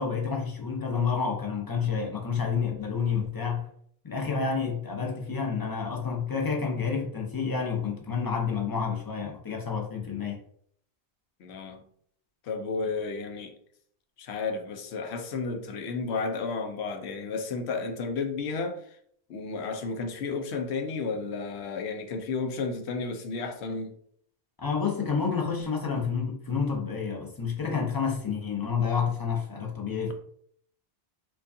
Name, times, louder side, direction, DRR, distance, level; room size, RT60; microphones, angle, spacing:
voice 1, 0.0-3.7 4.0-10.4 24.6-30.1, left 6 dB, 25° left, 0 dB, 0.5 m, -29 dB
voice 2, 11.4-11.8 12.4-13.5 14.2-19.0 19.3-23.9, left 4 dB, 75° left, 6 dB, 0.9 m, -32 dB
4.7 x 2.4 x 2.6 m, 0.64 s
omnidirectional pair, 1.1 m